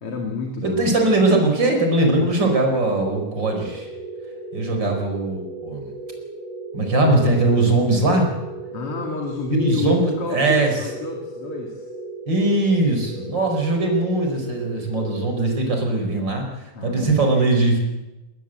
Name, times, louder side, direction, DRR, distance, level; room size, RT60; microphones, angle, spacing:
voice 1, 0.0-1.1 2.1-2.3 4.7-5.0 8.7-11.9 16.7-17.2, left 5 dB, 45° left, 1 dB, 3.1 m, -30 dB
voice 2, 0.6-3.9 4.5-5.9 6.7-8.3 9.5-10.8 12.3-16.4 16.8-17.8, right 2 dB, 30° right, 3 dB, 5.2 m, -20 dB
sound 1, 3.0-16.2, right 2 dB, 75° right, 4.3 m, -36 dB
20.5 x 20.0 x 7.9 m, 1.0 s
omnidirectional pair, 3.7 m